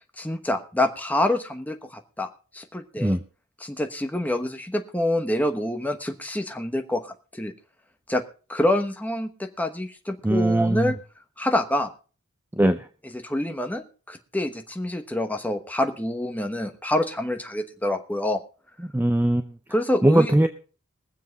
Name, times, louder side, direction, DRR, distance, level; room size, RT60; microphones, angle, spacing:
voice 1, 0.2-2.3 2.5-3.2 3.6-7.5 8.1-8.2 8.5-11.0 11.4-11.9 13.1-18.4 19.7-20.3, left 1 dB, 5° left, 7 dB, 1.0 m, -26 dB
voice 2, 10.2-10.9 12.6-12.9 18.8-19.5 20.0-20.5, right 1 dB, 10° right, 8 dB, 0.5 m, -20 dB
22.0 x 7.5 x 4.0 m, 0.37 s
head